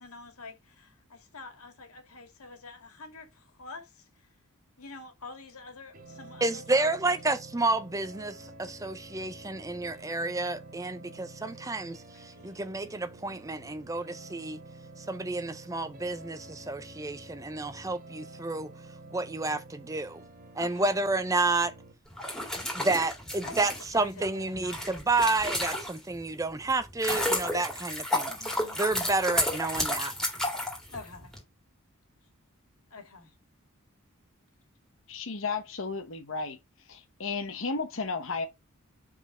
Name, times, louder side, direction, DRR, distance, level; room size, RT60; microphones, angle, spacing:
voice 1, 0.0-4.3 4.8-7.2 11.4-11.5 12.1-12.5 20.6-21.0 23.4-25.4 28.4-28.8 30.9-31.3 32.9-33.3, left 3 dB, 85° left, 1.9 m, -47 dB
sound 1, 5.9-21.9, right 2 dB, 40° right, 1.3 m, -49 dB
voice 2, 6.4-12.0 12.4-14.6 15.1-18.7 19.1-20.2 20.6-21.7 22.7-28.4 28.8-30.1, right 3 dB, 15° right, 0.5 m, -30 dB
sound 2, 22.1-26.2 26.7-31.4, left 1 dB, 5° left, 2.1 m, -32 dB
voice 3, 35.1-36.6 36.9-38.5, left 4 dB, 60° left, 0.9 m, -33 dB
5.2 x 4.2 x 4.9 m
head